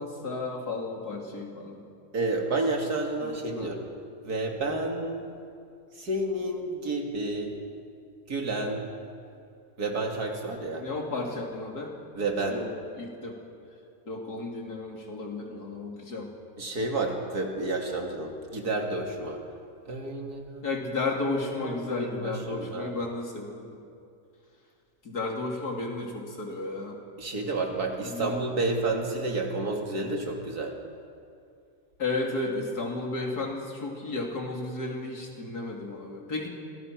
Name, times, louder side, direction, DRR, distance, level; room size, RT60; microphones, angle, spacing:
voice 1, 0.0-1.8 3.2-3.7 10.8-12.0 12.5-12.7 13.0-13.4 14.1-16.3 20.6-23.8 25.0-27.0 28.0-28.4 32.0-36.5, left 3 dB, 85° left, 0 dB, 3.6 m, -33 dB
voice 2, 2.1-3.9 4.2-5.3 5.9-7.6 8.3-8.9 9.8-10.9 12.1-12.6 16.6-19.4 19.9-20.7 21.5-23.0 27.2-30.8, right 2 dB, 80° right, 1 dB, 3.1 m, -30 dB
25.5 x 19.5 x 6.2 m, 2.5 s
omnidirectional pair, 1.6 m